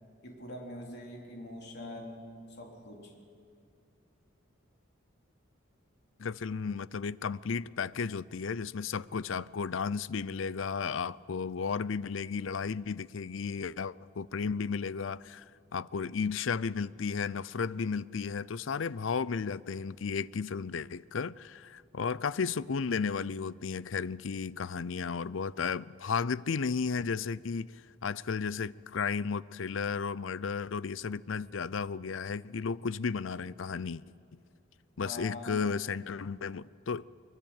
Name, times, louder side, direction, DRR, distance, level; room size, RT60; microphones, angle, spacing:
voice 1, 0.2-3.1 35.0-35.7, left 1 dB, 55° left, 3.9 m, -44 dB
voice 2, 6.2-15.4 15.7-27.7 28.0-34.0 35.0-37.1, left 5 dB, 75° left, 0.5 m, -34 dB
23.5 x 22.0 x 9.0 m
head